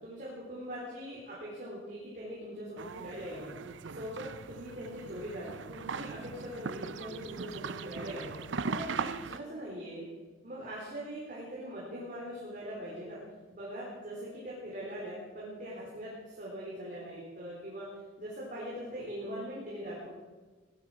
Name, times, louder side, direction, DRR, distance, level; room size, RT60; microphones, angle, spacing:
voice 1, 0.0-3.5 3.9-8.3 8.6-10.0 10.4-13.2 13.5-17.8 18.2-20.1, equal, 45° right, -6 dB, 4.1 m, -41 dB
sound 1, 2.8-9.4, right 5 dB, 75° right, 0.6 m, -39 dB
17.5 x 11.5 x 6.3 m, 1.3 s
head